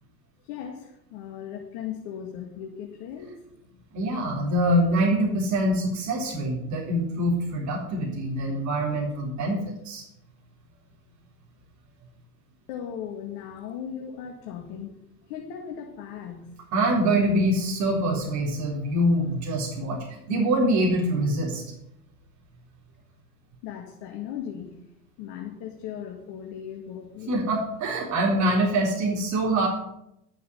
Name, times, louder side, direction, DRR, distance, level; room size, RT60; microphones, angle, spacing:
voice 1, 0.4-3.4 3.7-3.8 12.7-16.6 23.6-24.8 25.2-27.4, left 8 dB, 50° left, 2 dB, 2.0 m, -37 dB
voice 2, 3.9-10.0 16.7-21.6 27.3-29.7, right 1 dB, 35° right, -2 dB, 3.7 m, -24 dB
12.5 x 7.6 x 6.9 m, 0.82 s
hypercardioid pair, 95°, 49 cm